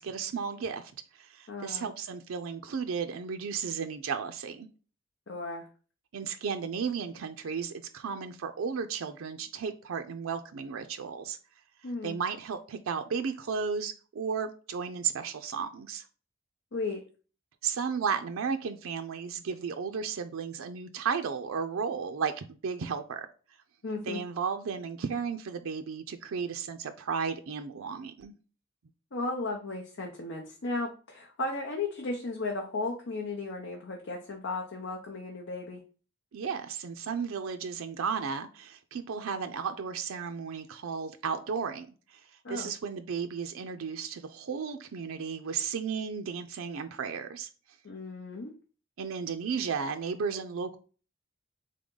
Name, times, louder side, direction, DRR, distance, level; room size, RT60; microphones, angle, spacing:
voice 1, 0.0-4.7 6.1-11.4 12.0-16.1 17.6-23.3 24.1-28.3 36.3-42.2 42.5-47.5 49.0-50.8, right 6 dB, 90° right, 0.4 m, -34 dB
voice 2, 1.5-1.9 5.3-5.7 11.8-12.2 16.7-17.0 23.8-24.2 29.1-35.8 42.4-42.7 47.8-48.5, left 3 dB, 70° left, 0.7 m, -35 dB
3.7 x 3.4 x 3.7 m
head